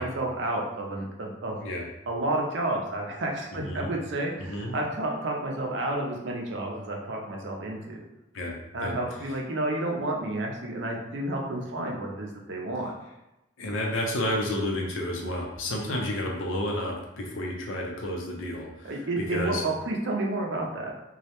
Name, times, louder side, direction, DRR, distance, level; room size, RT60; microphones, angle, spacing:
voice 1, 0.0-1.6 2.1-8.0 8.7-12.9 18.8-20.9, right 2 dB, 65° right, 0 dB, 0.5 m, -30 dB
voice 2, 3.5-3.9 4.4-4.8 8.3-9.0 13.6-19.6, left 1 dB, 80° left, 0 dB, 0.5 m, -31 dB
2.3 x 2.1 x 2.8 m, 0.94 s
head